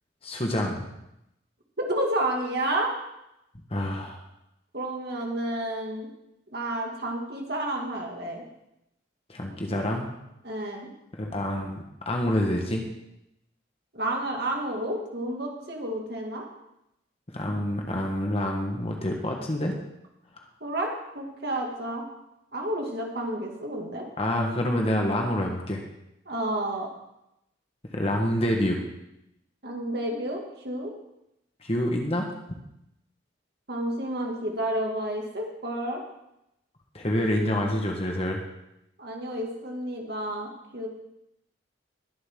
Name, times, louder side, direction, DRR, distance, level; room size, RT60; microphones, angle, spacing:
voice 1, 0.2-0.9 3.7-4.2 9.3-10.1 11.1-12.8 17.3-19.7 24.2-25.8 27.9-28.8 31.6-32.2 36.9-38.4, left 1 dB, 30° left, 1 dB, 1.5 m, -27 dB
voice 2, 1.9-2.9 4.7-6.1 6.5-8.4 10.4-10.9 13.9-16.4 20.6-22.0 22.5-24.0 26.3-26.9 29.6-30.9 33.7-36.0 39.0-40.9, right 1 dB, 55° right, 0 dB, 2.4 m, -30 dB
20.5 x 7.9 x 3.8 m, 0.84 s
head